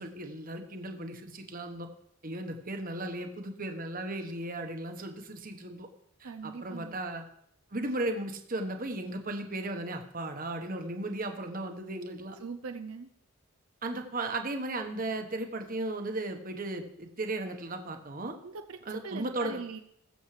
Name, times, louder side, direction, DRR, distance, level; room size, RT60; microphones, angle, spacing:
voice 1, 0.0-1.9 2.2-5.9 6.2-7.2 7.7-12.4 13.8-18.3 18.8-19.6, right 2 dB, 40° right, 5 dB, 1.2 m, -36 dB
voice 2, 6.2-7.0 12.4-13.1 18.4-19.8, right 4 dB, 75° right, 7 dB, 0.6 m, -41 dB
21.0 x 7.3 x 3.3 m, 0.72 s
head